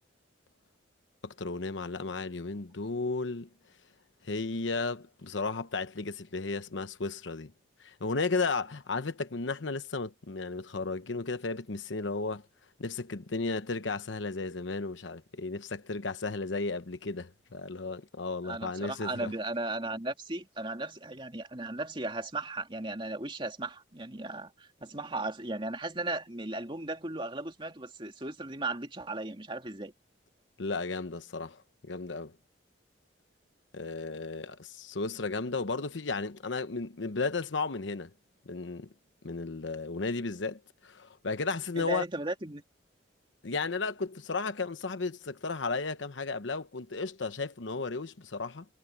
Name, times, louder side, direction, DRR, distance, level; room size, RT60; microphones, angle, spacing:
voice 1, 1.2-3.5 4.2-7.5 7.8-12.4 12.8-19.3 30.6-32.3 33.7-38.1 38.5-38.9 39.2-42.0 43.4-48.6, left 3 dB, 85° left, 1.0 m, -34 dB
voice 2, 18.4-29.9 41.8-42.6, right 2 dB, 25° right, 2.7 m, -36 dB
head